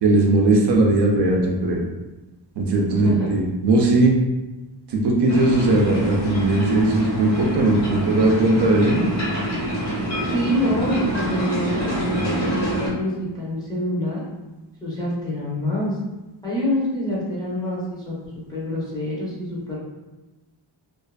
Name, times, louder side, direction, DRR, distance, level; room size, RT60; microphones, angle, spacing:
voice 1, 0.0-1.8 2.6-4.2 4.9-9.0, right 2 dB, 65° right, -1 dB, 0.5 m, -18 dB
voice 2, 2.9-3.4 10.3-13.1 13.4-14.2 14.8-15.9 16.4-19.8, left 1 dB, 10° left, -8 dB, 0.7 m, -26 dB
sound 1, 5.3-12.9, right 1 dB, 40° left, 1.2 m, -26 dB
2.4 x 2.4 x 2.3 m, 1.1 s
wide cardioid pair, 130°, 44 cm